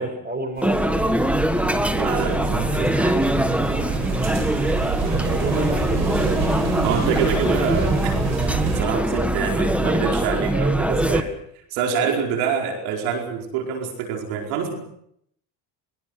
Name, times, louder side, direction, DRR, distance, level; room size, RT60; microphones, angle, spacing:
voice 1, 0.0-1.5 3.8-4.0 5.0-6.7 8.8-9.3 9.8-11.0 12.0-12.2, right 2 dB, 20° right, 8 dB, 6.5 m, -31 dB
sound 1, 0.6-11.2, right 1 dB, 5° right, 1.7 m, -22 dB
sound 2, 0.6-8.8, right 5 dB, 50° right, 7.4 m, -28 dB
voice 2, 1.9-3.7 6.8-8.1 8.6-11.3 11.7-14.7, right 7 dB, 80° right, 3 dB, 4.9 m, -26 dB
23.0 x 23.0 x 6.4 m, 0.70 s
supercardioid pair, 100°, 47 cm